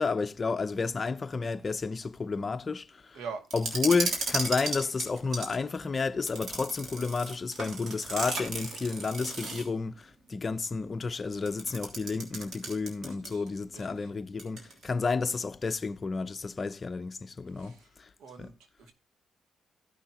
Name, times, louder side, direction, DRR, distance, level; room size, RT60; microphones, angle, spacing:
voice 1, 0.0-3.2 3.5-18.1 18.4-18.5, left 4 dB, 30° left, 0.7 m, -31 dB
voice 2, 3.1-3.5 13.0-13.4 13.7-14.1 17.6-17.9 18.2-18.9, right 5 dB, 80° right, 2.1 m, -44 dB
sound 1, 3.5-5.6 6.3-9.8 11.5-13.5 13.8-13.9 14.4-14.8, right 3 dB, 60° right, 3.2 m, -35 dB
15.5 x 6.0 x 2.9 m
cardioid pair, 90°, 0 cm